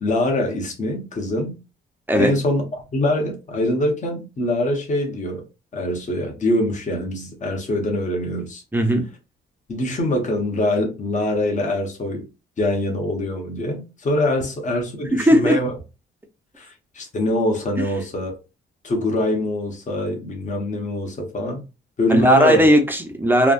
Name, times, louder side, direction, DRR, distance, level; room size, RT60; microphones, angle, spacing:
voice 1, 0.0-1.5 2.2-2.6 2.9-5.4 5.7-8.6 9.7-12.3 12.6-15.7 16.6-18.4 18.8-21.6 22.0-22.7, left 1 dB, 40° left, 1.3 m, -24 dB
voice 2, 8.7-9.0 15.1-15.6 22.1-23.5, equal, 10° right, 0.8 m, -16 dB
3.5 x 2.4 x 2.5 m
cardioid pair, 90°, 20 cm